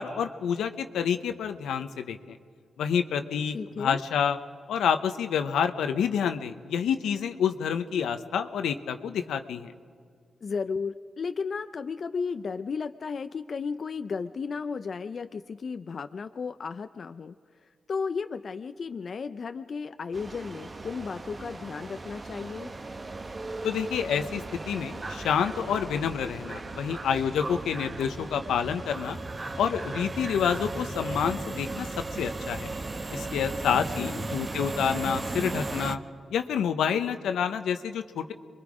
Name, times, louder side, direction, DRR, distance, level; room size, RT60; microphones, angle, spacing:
voice 1, 0.0-2.4 2.8-4.4 4.7-9.7 23.6-29.2 29.6-31.9 32.2-32.7 33.1-36.0 36.3-38.3, left 7 dB, 90° left, 8 dB, 1.0 m, -28 dB
voice 2, 3.5-4.0 10.4-17.3 17.6-22.7 34.0-34.2, left 5 dB, 60° left, 9 dB, 0.6 m, -34 dB
sound 1, 20.1-36.0, right 3 dB, 40° right, 1.1 m, -36 dB
28.0 x 22.5 x 5.0 m, 2.1 s
cardioid pair, 55°, 0 cm